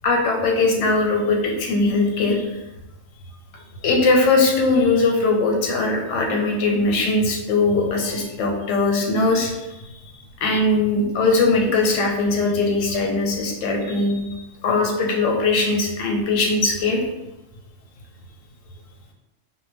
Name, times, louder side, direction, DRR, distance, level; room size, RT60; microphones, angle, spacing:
voice 1, 0.0-2.4 3.8-9.5 10.4-14.4 14.6-17.0, left 3 dB, 90° left, 1 dB, 1.0 m, -20 dB
2.1 x 2.1 x 3.4 m, 0.99 s
omnidirectional pair, 1.3 m